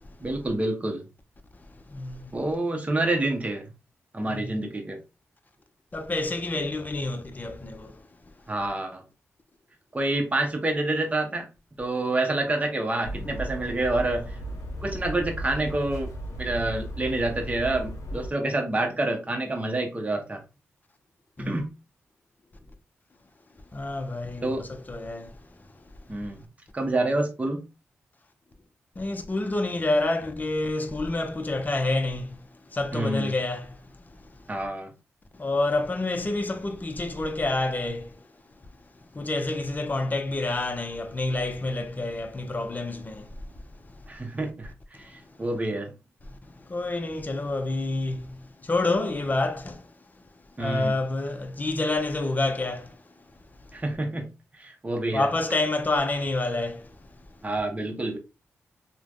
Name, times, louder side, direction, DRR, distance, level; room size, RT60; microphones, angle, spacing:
voice 1, 0.2-1.0 2.3-3.7 4.1-5.0 8.5-9.0 9.9-11.5 11.8-14.2 14.8-16.1 16.4-20.4 21.4-21.7 24.4-24.7 26.1-26.4 26.7-27.6 32.9-33.3 34.5-34.9 44.1-45.9 50.6-50.9 53.7-54.3 54.5-55.3 57.4-58.2, right 2 dB, 25° right, 0.8 m, -27 dB
voice 2, 1.6-2.4 4.3-4.6 5.9-8.1 21.4-21.6 23.7-25.8 26.2-26.3 29.0-34.6 35.3-38.2 39.1-44.0 44.9-45.3 46.2-50.2 50.6-53.1 53.6-53.8 55.1-57.0, left 2 dB, 35° left, 0.6 m, -29 dB
sound 1, 13.0-18.3, right 1 dB, 80° left, 0.6 m, -35 dB
3.2 x 2.1 x 2.5 m
cardioid pair, 50°, 5 cm